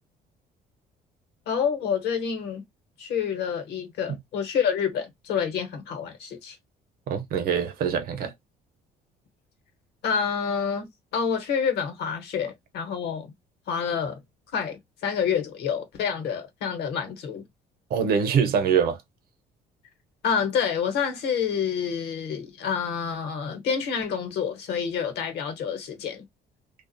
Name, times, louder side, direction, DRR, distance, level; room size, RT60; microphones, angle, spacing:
voice 1, 1.5-2.6 3.0-6.6 10.0-13.3 13.7-14.2 14.5-17.4 20.2-26.2, left 7 dB, 80° left, 1.0 m, -28 dB
voice 2, 7.1-8.3 17.9-19.0, right 7 dB, 65° right, 0.7 m, -24 dB
2.4 x 2.3 x 2.5 m
cardioid pair, 110°, 17 cm